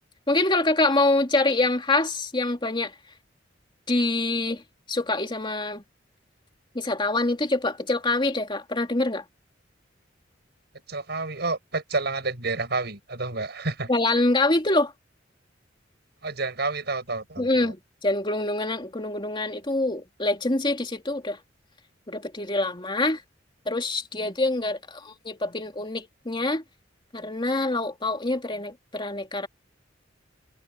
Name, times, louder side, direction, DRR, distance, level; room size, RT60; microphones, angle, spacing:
voice 1, 0.3-2.9 3.9-4.6 4.9-5.8 6.7-9.2 13.9-14.9 17.4-21.4 22.1-23.2 23.7-26.6 27.1-29.5, left 2 dB, 25° left, 2.8 m, -25 dB
voice 2, 10.9-13.9 16.2-17.7, right 3 dB, 60° right, 6.9 m, -29 dB
head